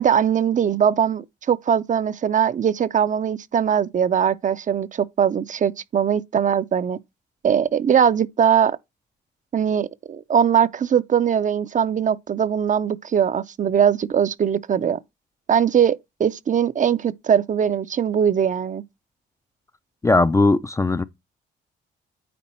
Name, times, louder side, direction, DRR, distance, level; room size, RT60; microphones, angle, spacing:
voice 1, 0.0-7.0 7.4-8.8 9.5-15.0 15.5-18.8, right 8 dB, 40° right, 0.5 m, -21 dB
voice 2, 20.0-21.0, left 3 dB, 15° left, 0.4 m, -18 dB
9.4 x 3.9 x 4.3 m
cardioid pair, 90°, 20 cm